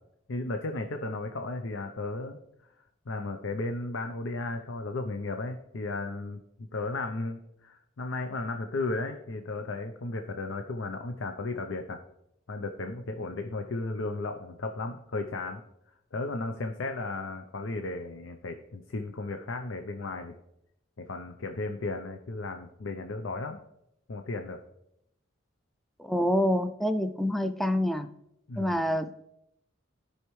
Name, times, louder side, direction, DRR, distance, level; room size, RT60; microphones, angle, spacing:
voice 1, 0.3-2.4 3.1-12.0 12.5-15.6 16.1-20.3 21.0-23.6 24.1-24.6 28.5-28.8, left 2 dB, 85° left, 5 dB, 0.7 m, -35 dB
voice 2, 26.0-28.1 28.6-29.1, equal, ahead, 8 dB, 0.4 m, -27 dB
15.5 x 5.6 x 3.2 m, 0.80 s
head